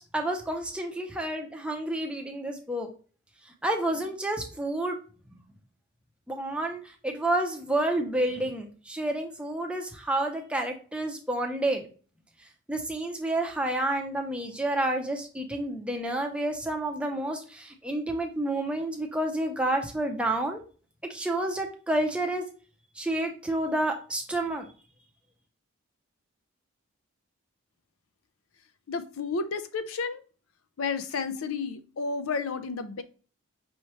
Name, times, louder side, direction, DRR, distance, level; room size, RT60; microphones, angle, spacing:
voice 1, 0.0-2.9 3.6-5.0 6.3-11.8 12.7-20.6 21.1-22.4 23.0-24.7, right 1 dB, 5° right, 0.5 m, -29 dB
voice 2, 28.9-30.2 30.8-33.0, left 4 dB, 75° left, 0.5 m, -31 dB
5.5 x 3.1 x 3.0 m
head